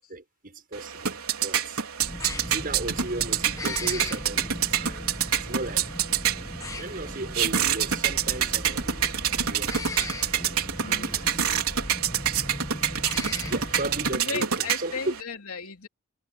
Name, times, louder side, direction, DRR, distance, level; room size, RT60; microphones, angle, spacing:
voice 1, 0.1-1.8 2.4-5.1 5.3-5.9 6.7-10.1 10.8-11.6 13.4-15.1, right 2 dB, 40° right, 6.6 m, -36 dB
sound 1, 0.7-15.2, right 9 dB, 90° right, 3.8 m, -27 dB
sound 2, 2.0-14.2, left 1 dB, 15° left, 1.4 m, -37 dB
sound 3, 4.4-5.4 6.4-7.4 8.4-9.4 10.4-11.4, equal, 10° right, 6.6 m, -49 dB
voice 2, 10.8-11.4 13.3-13.8 14.1-15.9, left 5 dB, 80° left, 3.3 m, -37 dB
head